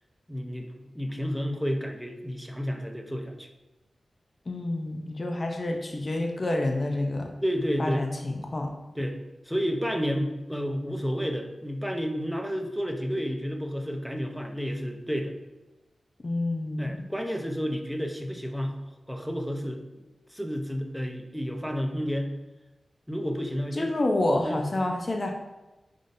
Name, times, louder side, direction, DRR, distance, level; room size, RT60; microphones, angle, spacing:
voice 1, 0.3-3.5 7.4-8.1 9.0-9.2 9.4-15.3 16.8-18.8 19.1-19.8 20.3-22.3 23.1-23.9 24.4-24.6, equal, ahead, 3 dB, 0.7 m, -31 dB
voice 2, 4.5-7.3 7.8-8.7 16.2-17.0 23.7-25.3, left 2 dB, 45° left, 2 dB, 0.6 m, -28 dB
5.2 x 3.7 x 2.7 m, 1.1 s
cardioid pair, 50°, 0 cm